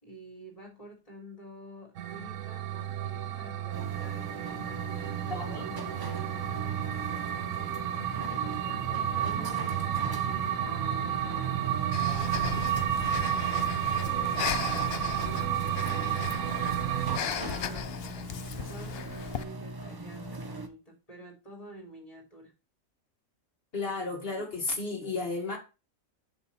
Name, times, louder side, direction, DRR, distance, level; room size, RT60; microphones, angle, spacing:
voice 1, 0.0-8.0 8.3-9.9 10.2-12.4 13.2-18.0 18.5-22.5, right 1 dB, 25° left, 3.5 m, -49 dB
sound 1, 2.0-17.2, right 11 dB, 70° right, 1.0 m, -31 dB
sound 2, 3.7-20.7, right 1 dB, 20° right, 0.7 m, -40 dB
voice 2, 5.3-5.6 23.7-25.6, left 3 dB, 40° left, 2.2 m, -33 dB
Breathing, 11.9-19.4, left 9 dB, 60° left, 0.7 m, -37 dB
7.1 x 6.5 x 4.3 m
omnidirectional pair, 1.5 m